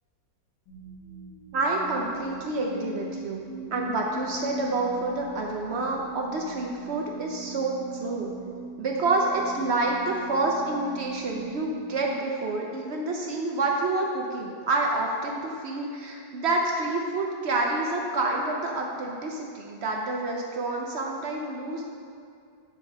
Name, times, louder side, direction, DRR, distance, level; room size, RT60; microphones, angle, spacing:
sound 1, 0.7-12.8, right 1 dB, 85° left, 2.1 m, -41 dB
voice 1, 1.5-8.3 8.8-21.8, right 2 dB, 70° right, 0 dB, 0.6 m, -28 dB
7.4 x 4.7 x 5.5 m, 2.4 s
omnidirectional pair, 2.0 m